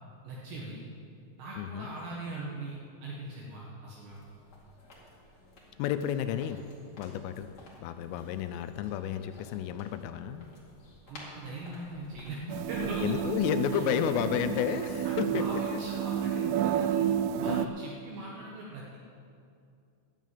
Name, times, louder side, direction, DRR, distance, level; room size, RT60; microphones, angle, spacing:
voice 1, 0.2-0.8 1.4-2.8 3.0-4.2 11.1-13.0 15.0-17.0 17.4-19.0, right 2 dB, 65° right, -4 dB, 3.3 m, -40 dB
voice 2, 1.6-1.9 5.8-6.6 7.0-7.5 7.8-10.5 13.0-15.6 17.4-17.7, left 10 dB, 85° left, 9 dB, 3.1 m, -31 dB
sound 1, 4.1-13.4, left 1 dB, 55° left, 1.1 m, -53 dB
sound 2, 12.5-17.7, right 10 dB, 85° right, 2.7 m, -30 dB
12.5 x 7.2 x 9.2 m, 2.5 s
omnidirectional pair, 5.9 m